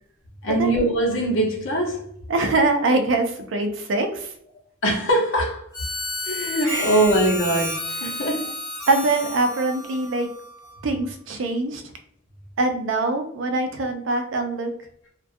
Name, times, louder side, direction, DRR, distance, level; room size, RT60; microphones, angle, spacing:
voice 1, 0.4-2.1 4.8-5.6 6.2-8.5, right 1 dB, 80° left, 0.8 m, -22 dB
voice 2, 2.3-4.3 6.6-7.1 8.3-8.5 8.9-10.3 10.8-11.8 12.6-14.7, right 2 dB, 80° right, 0.4 m, -23 dB
Harmonica, 5.7-10.9, left 1 dB, 20° left, 0.8 m, -32 dB
2.3 x 2.2 x 2.5 m
head